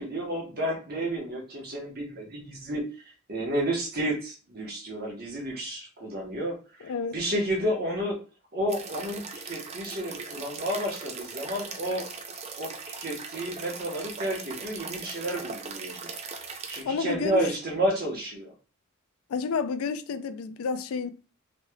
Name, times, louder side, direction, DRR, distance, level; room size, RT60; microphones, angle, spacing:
voice 1, 0.0-8.2 8.5-12.1 12.5-16.1 16.7-18.5, right 1 dB, 50° right, 1.0 m, -31 dB
voice 2, 6.8-7.2 16.8-17.5 19.3-21.1, left 5 dB, 90° left, 0.3 m, -30 dB
sound 1, 8.7-16.8, right 4 dB, 30° right, 0.4 m, -39 dB
3.2 x 3.0 x 2.2 m
head